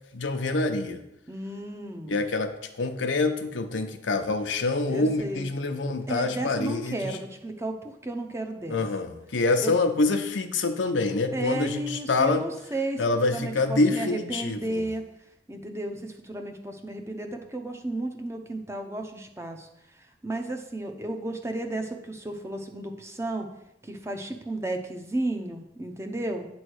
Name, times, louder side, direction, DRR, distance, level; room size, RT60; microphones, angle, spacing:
voice 1, 0.1-1.0 2.1-7.2 8.7-12.4 13.0-14.8, left 3 dB, 85° left, 6 dB, 0.7 m, -26 dB
voice 2, 1.3-2.2 4.9-5.5 6.1-8.8 9.6-9.7 11.3-15.0 15.5-19.7 20.0-23.5 23.8-26.5, right 1 dB, 15° right, 4 dB, 0.6 m, -33 dB
8.9 x 3.1 x 6.3 m, 0.86 s
head